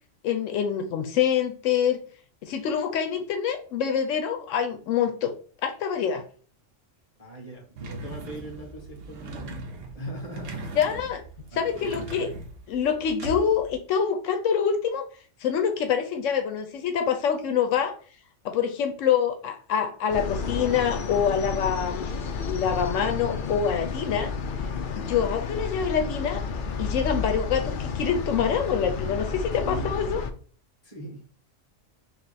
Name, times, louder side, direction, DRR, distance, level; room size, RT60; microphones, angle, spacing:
voice 1, 0.2-2.0 2.4-5.3 5.6-6.2 10.7-11.2 11.5-12.3 12.7-15.0 15.4-17.9 18.4-22.1 22.4-24.3 25.0-26.4 26.8-30.2, left 7 dB, 85° left, 6 dB, 1.0 m, -25 dB
voice 2, 7.2-10.8 11.5-12.4 29.6-30.0 30.8-31.2, right 1 dB, 30° left, -1 dB, 1.4 m, -40 dB
sound 1, 7.8-13.8, right 2 dB, 85° right, 1.1 m, -40 dB
sound 2, 20.1-30.3, left 5 dB, 60° left, 0.5 m, -31 dB
3.4 x 3.0 x 4.1 m, 0.43 s
omnidirectional pair, 1.3 m